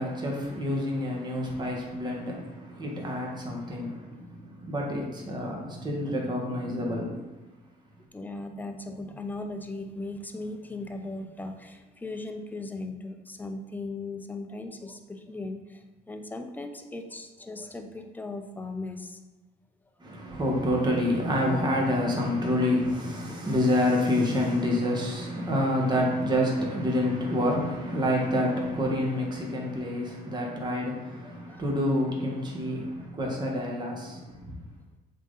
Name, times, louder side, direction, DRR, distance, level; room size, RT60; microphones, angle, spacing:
voice 1, 0.0-7.2 20.0-34.6, left 1 dB, 25° right, 1.5 m, -28 dB
voice 2, 8.1-19.2 31.2-31.7 33.0-33.1, left 2 dB, 10° left, 0.6 m, -38 dB
7.3 x 3.8 x 4.0 m
cardioid pair, 110°, 17 cm